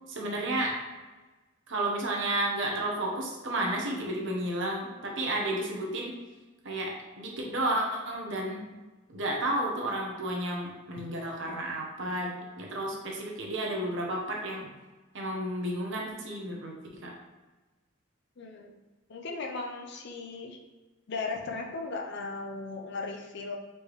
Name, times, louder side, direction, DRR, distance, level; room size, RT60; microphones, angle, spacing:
voice 1, 0.1-0.8 1.7-6.1 6.6-8.7 9.1-14.7 15.1-17.1, right 1 dB, 60° right, -1 dB, 0.9 m, -32 dB
voice 2, 18.4-18.7 19.1-20.6 21.1-23.6, left 3 dB, 55° left, 2 dB, 0.6 m, -37 dB
4.3 x 3.3 x 3.1 m, 1.2 s
head